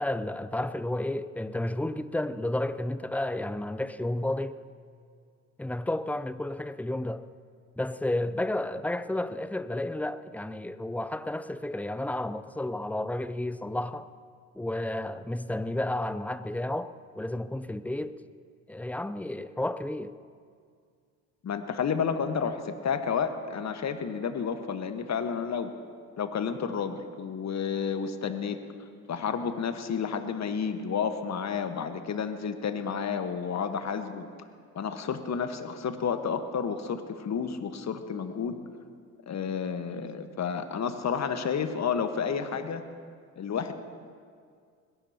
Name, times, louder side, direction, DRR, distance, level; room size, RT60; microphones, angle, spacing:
voice 1, 0.0-4.6 5.6-7.2 7.8-14.1 14.5-18.2 18.7-20.1, left 1 dB, 5° left, 0.5 m, -32 dB
voice 2, 21.4-25.7 26.2-28.6 29.1-34.3 34.7-38.6 39.3-42.8 43.4-43.7, left 6 dB, 40° left, 1.4 m, -31 dB
21.0 x 17.0 x 2.9 m
hypercardioid pair, 60°, 42 cm